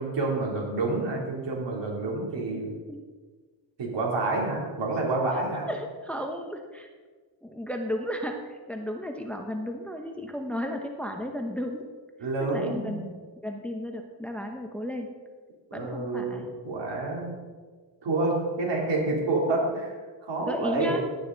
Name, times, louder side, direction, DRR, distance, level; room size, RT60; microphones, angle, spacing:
voice 1, 0.0-2.7 3.8-5.7 12.2-13.0 15.7-17.4 18.0-19.9 20.2-21.0, right 2 dB, 60° right, -2 dB, 3.5 m, -28 dB
voice 2, 2.5-3.0 5.7-6.9 7.4-11.9 12.5-15.1 15.7-16.5 20.4-21.0, equal, 5° left, 3 dB, 0.9 m, -34 dB
11.5 x 10.0 x 4.0 m, 1.4 s
cardioid pair, 95°, 48 cm